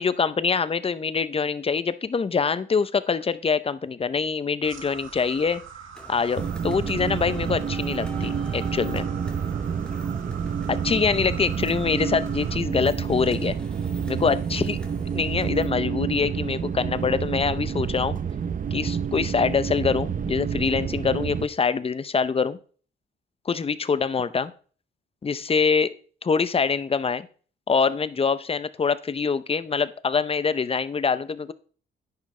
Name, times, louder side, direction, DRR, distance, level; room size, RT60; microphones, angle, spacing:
voice 1, 0.0-5.6 6.1-9.1 10.7-13.6 14.1-14.8 15.1-18.2 18.7-22.6 23.5-24.5 25.2-25.9 26.2-27.3 27.7-31.5, left 5 dB, 30° left, 16 dB, 0.6 m, -24 dB
sound 1, 4.6-12.6, right 7 dB, 70° right, 1.6 m, -43 dB
sound 2, 5.9-15.7, left 1 dB, 5° left, 2.1 m, -46 dB
sound 3, 6.4-21.5, right 7 dB, 40° right, 0.7 m, -29 dB
10.5 x 8.5 x 3.2 m, 0.43 s
cardioid pair, 90°, 21 cm